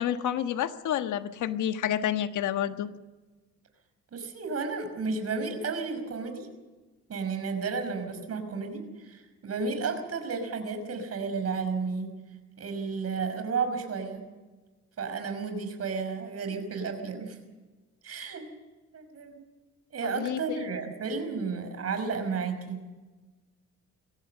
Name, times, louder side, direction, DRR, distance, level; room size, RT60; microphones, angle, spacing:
voice 1, 0.0-2.9 20.0-20.7, left 10 dB, 80° left, 9 dB, 1.5 m, -29 dB
voice 2, 4.1-6.5 7.1-12.1 12.6-14.2 15.0-17.4 18.0-18.5 18.9-19.4 19.9-22.8, right 4 dB, 55° right, 7 dB, 5.5 m, -32 dB
23.0 x 17.0 x 6.9 m, 1.2 s
cardioid pair, 90°, 30 cm